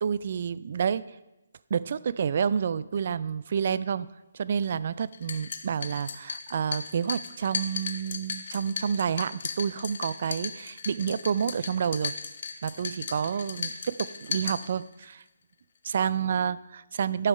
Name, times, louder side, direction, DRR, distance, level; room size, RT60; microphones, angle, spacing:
voice 1, 0.0-1.0 1.7-12.1 12.6-15.2 15.8-17.3, right 7 dB, 50° right, 17 dB, 0.3 m, -29 dB
sound 1, 5.1-15.1, left 5 dB, 50° left, 0.8 m, -37 dB
11.5 x 5.7 x 5.3 m, 0.98 s
hypercardioid pair, 165°, 0 cm